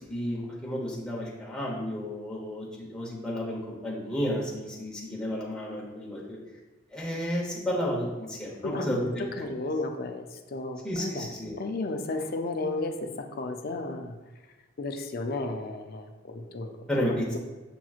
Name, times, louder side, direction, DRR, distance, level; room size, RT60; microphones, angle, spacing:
voice 1, 0.0-6.4 6.9-9.2 10.8-11.6 16.9-17.2, equal, 5° left, -5 dB, 0.9 m, -32 dB
voice 2, 8.6-11.3 11.6-14.2 14.8-17.4, left 2 dB, 50° left, 5 dB, 0.4 m, -34 dB
7.0 x 3.0 x 2.4 m, 1.2 s
head